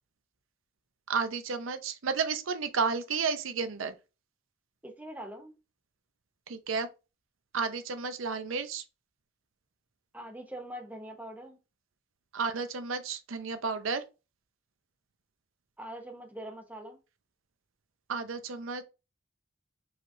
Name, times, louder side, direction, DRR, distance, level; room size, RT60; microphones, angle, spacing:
voice 1, 1.1-3.9 6.5-6.9 7.5-8.8 12.3-14.0 18.1-18.8, right 5 dB, 85° right, 0.6 m, -32 dB
voice 2, 4.8-5.5 10.1-11.6 15.8-17.0, right 1 dB, 10° right, 0.8 m, -43 dB
4.7 x 3.1 x 2.6 m
head